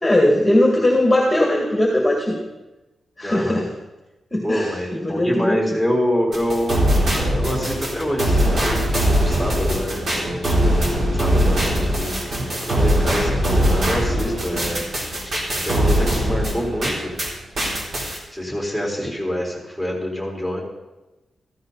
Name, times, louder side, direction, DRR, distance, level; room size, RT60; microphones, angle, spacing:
voice 1, 0.0-2.4 3.2-3.7 4.3-4.7 5.0-5.6, left 1 dB, 10° left, 0 dB, 2.1 m, -18 dB
voice 2, 3.2-3.6 4.4-12.4 12.6-14.8 15.5-17.1 18.3-20.6, equal, 15° right, -2 dB, 3.9 m, -26 dB
sound 1, 6.3-17.3 17.6-18.2, equal, 45° right, 3.6 m, -21 dB
15.5 x 14.5 x 4.1 m, 1.1 s
wide cardioid pair, 145°, 0 cm